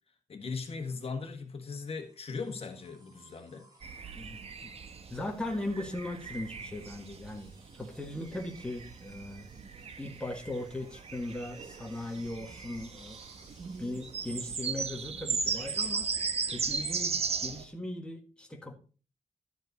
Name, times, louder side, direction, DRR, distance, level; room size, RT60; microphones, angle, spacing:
voice 1, 0.3-3.6, left 4 dB, 55° left, 1.6 m, -38 dB
sound 1, 1.8-15.8 17.2-17.3, right 2 dB, 30° right, 4.2 m, -61 dB
sound 2, 3.8-17.6, right 5 dB, 60° right, 0.9 m, -37 dB
voice 2, 4.2-4.7 5.1-7.5 7.8-9.5 10.0-13.2 13.8-16.1 16.5-18.7, left 1 dB, 10° left, 1.6 m, -38 dB
12.0 x 7.7 x 4.1 m
wide cardioid pair, 165°, 12 cm